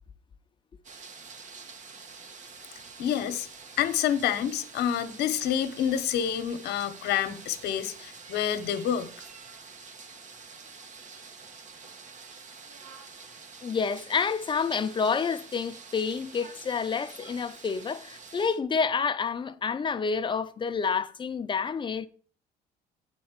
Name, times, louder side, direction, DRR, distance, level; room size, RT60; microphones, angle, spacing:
sound 1, 0.8-18.6, right 4 dB, 45° right, 1.4 m, -47 dB
voice 1, 3.0-3.5 3.8-9.1, left 9 dB, 75° left, 1.0 m, -28 dB
voice 2, 13.6-22.1, left 5 dB, 30° left, 0.7 m, -29 dB
9.1 x 4.4 x 7.3 m
cardioid pair, 110°, 17 cm